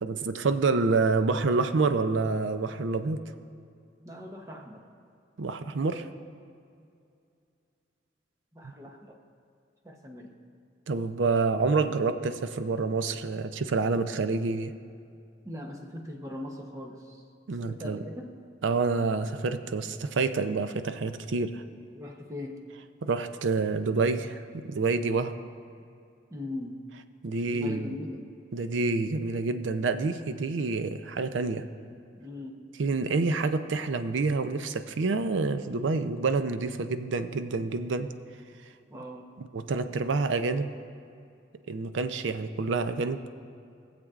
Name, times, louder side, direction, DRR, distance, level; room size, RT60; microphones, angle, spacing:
voice 1, 0.0-3.2 5.4-6.1 8.6-8.7 10.9-14.7 17.5-18.0 18.6-21.6 23.0-25.3 27.2-27.9 28.5-31.6 32.8-38.1 39.5-40.7 41.7-43.2, right 4 dB, 85° right, 10 dB, 0.5 m, -28 dB
voice 2, 4.0-4.9 8.5-9.2 9.8-10.4 15.4-17.2 17.7-18.4 21.9-22.7 25.8-25.9 26.3-26.8 27.5-28.3 32.1-32.6 38.9-39.3, left 1 dB, 15° right, 2 dB, 0.8 m, -40 dB
21.0 x 7.5 x 2.4 m, 2.4 s
head